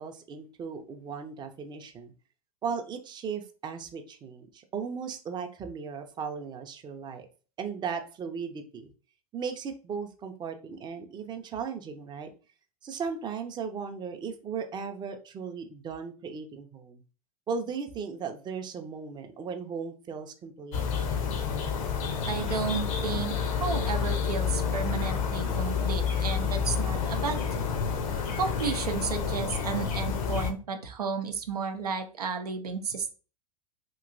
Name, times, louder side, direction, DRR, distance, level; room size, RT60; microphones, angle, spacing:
voice 1, 0.0-2.1 2.6-7.3 7.6-8.9 9.3-12.3 12.8-17.0 17.5-20.8, right 6 dB, 25° right, 5 dB, 0.5 m, -36 dB
sound 1, 20.7-30.5, left 6 dB, 65° left, 0.7 m, -29 dB
voice 2, 22.3-27.4 28.4-33.1, right 5 dB, 85° right, 6 dB, 0.6 m, -32 dB
3.0 x 2.8 x 2.5 m, 0.35 s
hypercardioid pair, 90°, 19 cm